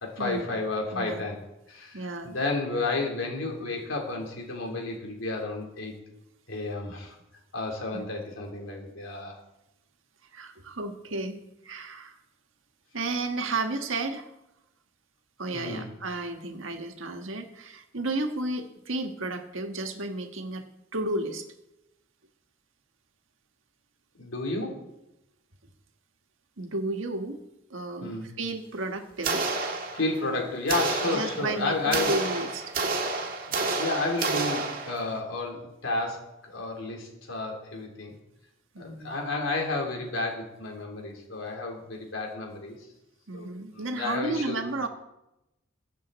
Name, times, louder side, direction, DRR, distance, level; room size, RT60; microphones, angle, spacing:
voice 1, 0.0-1.4 1.7-5.9 6.5-7.2 7.5-9.4 15.5-15.9 24.2-24.8 28.0-28.3 29.9-32.2 33.8-38.1 38.8-42.8 43.3-43.5 43.7-44.6, left 2 dB, 90° left, 0 dB, 3.6 m, -31 dB
voice 2, 0.9-1.2 1.9-2.3 7.9-8.0 10.3-11.4 11.6-12.2 12.9-14.3 15.4-20.6 20.9-21.5 26.6-27.4 27.7-29.4 31.1-32.7 38.7-39.1 43.3-44.9, right 2 dB, 80° right, 6 dB, 1.5 m, -32 dB
sound 1, 29.2-30.3 30.7-35.2, right 3 dB, 45° right, 1.9 m, -30 dB
22.0 x 7.5 x 4.2 m, 0.90 s
head